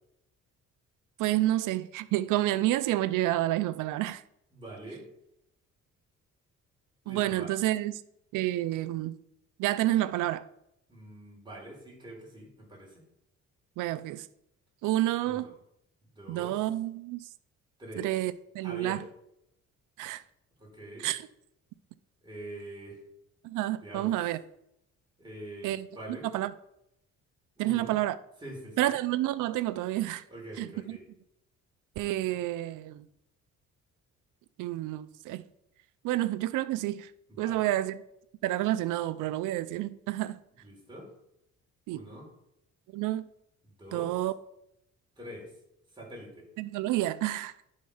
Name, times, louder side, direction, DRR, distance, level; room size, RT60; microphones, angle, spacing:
voice 1, 1.2-4.2 7.1-7.9 8.3-9.2 9.6-10.4 13.8-14.3 14.8-15.5 16.3-17.2 18.0-19.0 20.0-20.2 21.0-21.2 23.4-24.4 25.6-25.9 26.3-26.5 27.6-28.2 28.8-30.2 30.6-31.0 32.0-33.1 34.6-35.4 36.0-37.1 37.4-38.0 38.4-40.4 41.9-42.0 42.9-43.3 43.9-44.4 46.6-47.5, right 15 dB, 85° right, 0.5 m, -29 dB
voice 2, 4.5-5.1 7.0-7.5 10.9-13.0 15.2-15.5 16.2-16.6 17.8-18.1 18.6-19.0 20.6-21.1 22.2-23.0 23.8-24.1 25.2-26.3 27.6-27.9 28.4-28.9 30.3-31.0 37.3-37.6 40.6-41.1 41.9-42.3 43.6-44.2 45.2-45.5 45.9-46.5, right 1 dB, 15° right, 4.1 m, -44 dB
10.5 x 5.0 x 5.5 m
cardioid pair, 90°, 30 cm